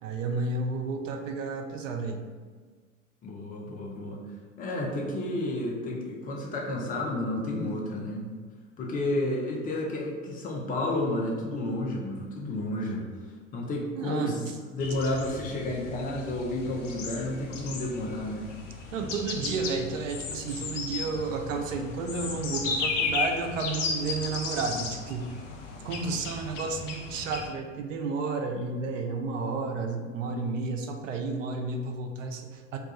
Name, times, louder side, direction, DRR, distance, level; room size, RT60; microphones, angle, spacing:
voice 1, 0.0-2.2 14.0-14.5 18.9-25.3 25.8-32.8, right 4 dB, 70° right, 4 dB, 0.5 m, -32 dB
voice 2, 3.2-4.2 4.6-8.2 8.8-13.0 13.5-14.4 14.7-18.5, left 1 dB, 20° left, -1 dB, 0.5 m, -31 dB
sound 1, 14.8-27.5, left 4 dB, 65° left, 0.6 m, -35 dB
2.3 x 2.3 x 3.9 m, 1.5 s
figure-of-eight pair, 80°, 39 cm